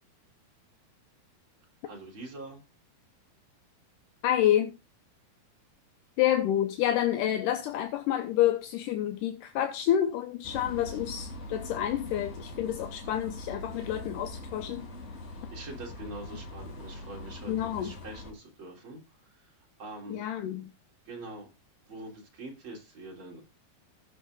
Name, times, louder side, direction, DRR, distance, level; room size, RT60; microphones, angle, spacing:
voice 1, 1.8-2.6 15.5-19.0 19.4-19.5 19.8-20.3 21.1-21.5 21.9-23.4, right 2 dB, 35° right, 4.0 m, -44 dB
voice 2, 4.2-4.8 6.2-14.9 17.5-17.9 20.1-20.7, left 11 dB, 75° left, 2.3 m, -28 dB
sound 1, 10.4-18.3, left 2 dB, 55° left, 4.2 m, -42 dB
19.5 x 6.9 x 2.5 m
omnidirectional pair, 4.2 m